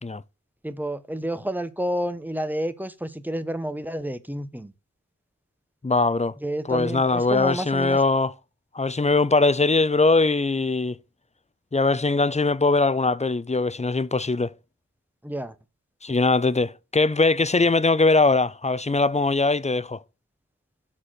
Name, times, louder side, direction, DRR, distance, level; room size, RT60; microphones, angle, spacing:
voice 1, 0.6-4.7 6.4-8.0 15.2-15.5, equal, 5° right, 0.9 m, -30 dB
voice 2, 5.8-6.3 6.6-8.3 8.7-11.0 11.7-14.5 16.0-20.0, left 3 dB, 20° left, 0.4 m, -21 dB
12.5 x 4.3 x 6.3 m
wide cardioid pair, 45°, 33 cm